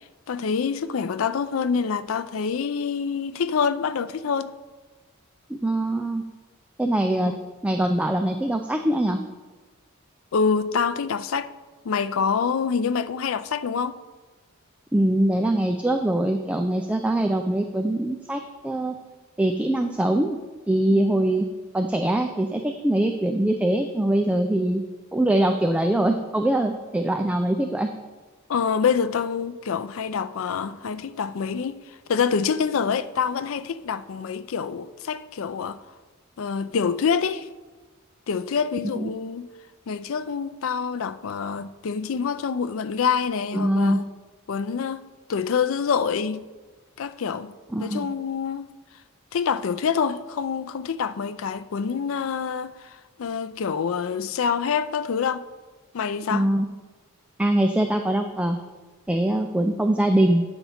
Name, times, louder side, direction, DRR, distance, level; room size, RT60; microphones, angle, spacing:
voice 1, 0.3-4.5 7.3-7.4 10.3-11.5 11.8-14.0 20.9-21.1 28.5-31.8 32.1-35.8 36.4-37.5 38.3-39.5 39.9-44.0 44.5-45.0 45.3-46.5 47.0-47.5 47.8-48.7 49.3-55.4 55.9-56.5, left 6 dB, 65° left, 0.4 m, -26 dB
voice 2, 5.5-6.2 6.8-7.3 7.6-9.2 14.9-18.9 19.4-20.4 20.7-21.5 21.7-24.8 25.1-27.9 39.0-39.1 43.5-44.0 47.7-48.1 56.3-56.7 57.4-58.6 59.1-60.4, right 1 dB, 5° right, 0.3 m, -23 dB
9.1 x 6.9 x 4.2 m
head